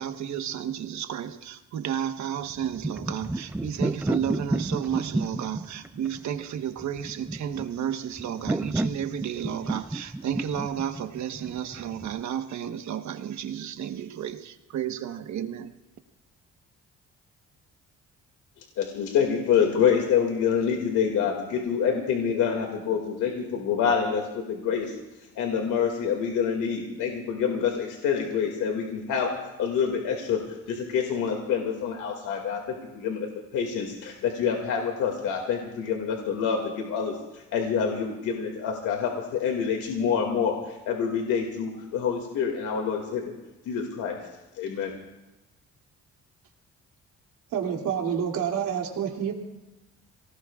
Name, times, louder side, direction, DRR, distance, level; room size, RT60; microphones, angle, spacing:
voice 1, 0.0-15.7, right 9 dB, 65° right, 1.2 m, -32 dB
sound 1, 2.5-12.2, right 2 dB, 5° right, 0.4 m, -31 dB
voice 2, 18.8-25.0 25.4-43.3 43.7-44.2 44.6-44.9, left 7 dB, 90° left, 2.3 m, -27 dB
voice 3, 47.5-49.3, right 8 dB, 85° right, 2.8 m, -28 dB
28.0 x 18.0 x 2.4 m
cardioid pair, 90°, 30 cm